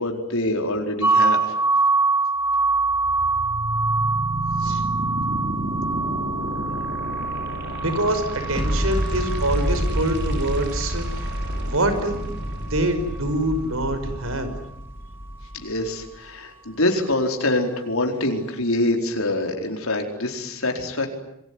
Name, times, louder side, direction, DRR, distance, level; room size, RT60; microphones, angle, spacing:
voice 1, 0.0-1.6 15.5-21.1, left 1 dB, 90° left, 3 dB, 4.5 m, -25 dB
sound 1, 1.0-12.8, right 3 dB, 10° right, 2.4 m, -25 dB
sound 2, 2.4-14.4, right 1 dB, 55° right, 7.0 m, -32 dB
voice 2, 7.8-11.3 11.6-12.2 12.7-14.5, right 1 dB, 85° right, 10 dB, 5.7 m, -25 dB
sound 3, 8.5-16.1, equal, 5° left, 3.4 m, -29 dB
27.5 x 22.0 x 9.8 m, 0.81 s
head